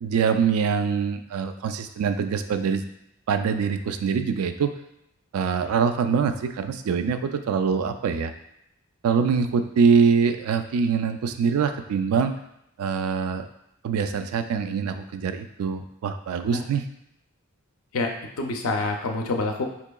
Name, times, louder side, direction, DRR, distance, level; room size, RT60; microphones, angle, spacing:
voice 1, 0.0-2.8 3.3-4.7 5.3-8.3 9.0-12.3 12.8-13.5 13.8-16.8, right 6 dB, 80° right, 8 dB, 0.3 m, -24 dB
voice 2, 17.9-19.7, left 3 dB, 75° left, 3 dB, 0.5 m, -27 dB
4.3 x 2.9 x 2.2 m, 0.81 s
head